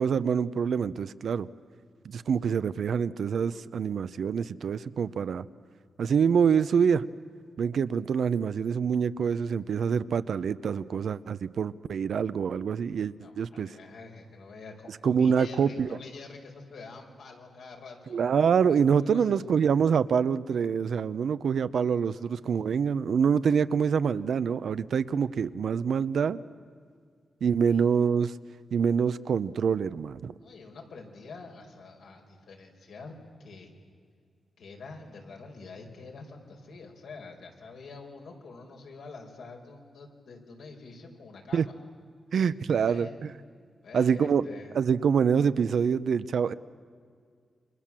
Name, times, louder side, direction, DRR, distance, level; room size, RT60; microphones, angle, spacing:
voice 1, 0.0-1.5 2.0-5.4 6.0-7.1 7.6-13.7 15.0-15.9 18.1-26.4 27.4-28.3 28.7-30.3 41.5-41.6 42.3-43.3 43.9-44.5 44.7-46.5, right 7 dB, 70° right, 14 dB, 0.8 m, -26 dB
voice 2, 13.2-18.2 19.0-19.4 22.0-22.3 27.7-27.8 30.4-33.7 34.6-41.6 42.8-43.1 43.8-44.7, left 4 dB, 85° left, 1 dB, 4.9 m, -46 dB
29.5 x 25.5 x 7.6 m, 2.1 s
wide cardioid pair, 125°, 0 cm